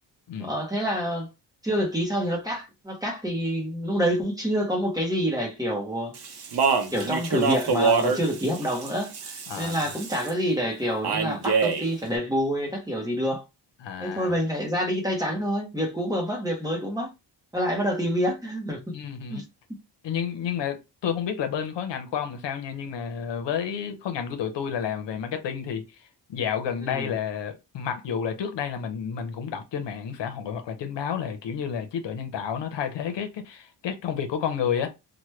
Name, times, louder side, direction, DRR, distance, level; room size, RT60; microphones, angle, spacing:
voice 1, 0.4-1.3 1.6-6.2 6.9-13.4 14.0-17.1 17.5-18.8 19.3-19.4 26.8-27.1, equal, 10° right, 0.7 m, -27 dB
Speech, 6.1-10.3 11.0-11.9, right 5 dB, 65° right, 0.7 m, -26 dB
voice 2, 9.5-9.8 13.8-14.3 18.9-19.4 20.0-25.8 26.3-34.9, left 8 dB, 80° left, 0.7 m, -30 dB
3.0 x 2.2 x 3.1 m
wide cardioid pair, 175°, 43 cm